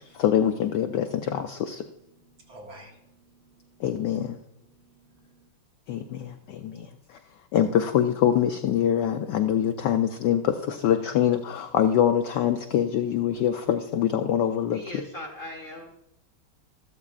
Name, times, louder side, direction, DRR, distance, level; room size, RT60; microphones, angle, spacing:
voice 1, 0.0-1.8 3.8-4.4 5.9-7.2 7.5-14.8, left 9 dB, 80° left, 7 dB, 0.9 m, -24 dB
voice 2, 2.0-5.5, right 1 dB, 65° right, -1 dB, 2.6 m, -52 dB
voice 3, 14.7-15.9, left 1 dB, 50° left, 1 dB, 1.1 m, -39 dB
13.5 x 12.5 x 2.4 m, 0.84 s
omnidirectional pair, 2.4 m